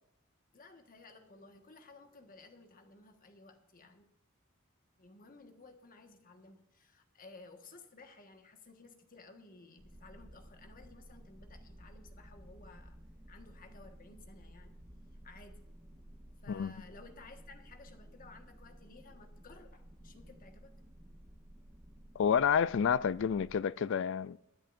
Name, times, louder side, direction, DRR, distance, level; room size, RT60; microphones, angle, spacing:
voice 1, 0.5-4.1 5.0-13.0 13.3-14.7 15.1-20.8, left 3 dB, 45° left, 1.5 m, -56 dB
sound 1, 9.8-23.6, equal, 20° right, 1.1 m, -55 dB
voice 2, 22.2-24.4, left 7 dB, 60° left, 0.4 m, -29 dB
21.5 x 10.5 x 2.6 m
head